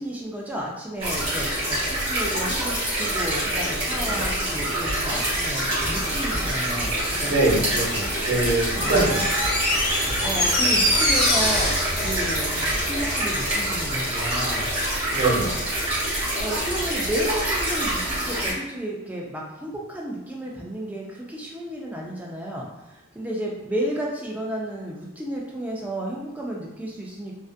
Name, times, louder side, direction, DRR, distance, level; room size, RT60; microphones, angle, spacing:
voice 1, 0.0-7.3 8.8-9.0 10.2-11.7 12.0-14.7 16.4-27.4, right 1 dB, 5° right, -3 dB, 0.3 m, -32 dB
sound 1, 1.0-18.5, right 1 dB, 25° right, 0.9 m, -26 dB
sound 2, 3.9-13.3, equal, 15° left, 1.1 m, -36 dB
voice 2, 7.2-9.3 15.1-15.5, right 2 dB, 55° right, -9 dB, 0.9 m, -23 dB
Door, 8.7-13.3 13.6-13.7, left 1 dB, 45° left, 0.8 m, -24 dB
2.5 x 2.4 x 2.4 m, 0.98 s
head